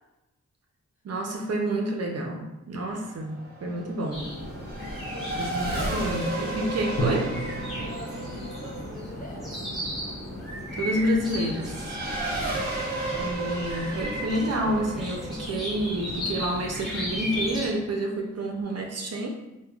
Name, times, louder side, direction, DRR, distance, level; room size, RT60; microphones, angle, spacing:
voice 1, 1.0-4.3 5.3-7.4 10.8-12.0 13.2-19.3, right 1 dB, 55° right, 2 dB, 0.5 m, -29 dB
Race car auto racing / Accelerating revving vroom, 2.9-17.0, right 2 dB, 30° right, 0.9 m, -34 dB
sound 1, 4.1-17.7, equal, ahead, 1.2 m, -35 dB
voice 2, 4.8-6.2 7.8-9.6, left 2 dB, 25° left, -3 dB, 0.6 m, -43 dB
Drum, 7.0-11.0, right 1 dB, 85° left, 0.8 m, -35 dB
5.1 x 2.1 x 2.3 m, 1.0 s
wide cardioid pair, 145°, 31 cm